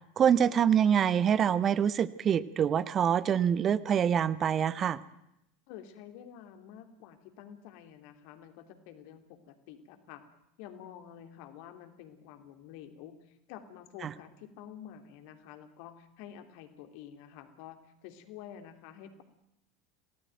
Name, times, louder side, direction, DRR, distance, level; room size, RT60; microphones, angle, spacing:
voice 1, 0.2-5.0 14.0-14.1, right 8 dB, 30° right, 17 dB, 1.0 m, -25 dB
voice 2, 5.7-10.2 10.6-19.2, left 9 dB, 50° left, 8 dB, 3.1 m, -49 dB
27.0 x 18.0 x 9.2 m, 0.83 s
figure-of-eight pair, 75°, 0 cm